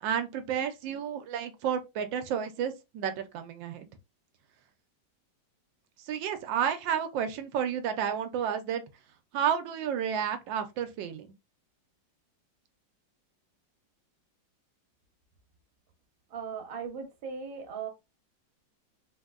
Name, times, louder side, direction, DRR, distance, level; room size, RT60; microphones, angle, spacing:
voice 1, 0.0-3.9 6.0-8.8 9.3-11.3, right 8 dB, 80° right, 1.3 m, -31 dB
voice 2, 16.3-17.9, right 6 dB, 40° right, 0.8 m, -38 dB
3.6 x 2.6 x 2.4 m
omnidirectional pair, 2.0 m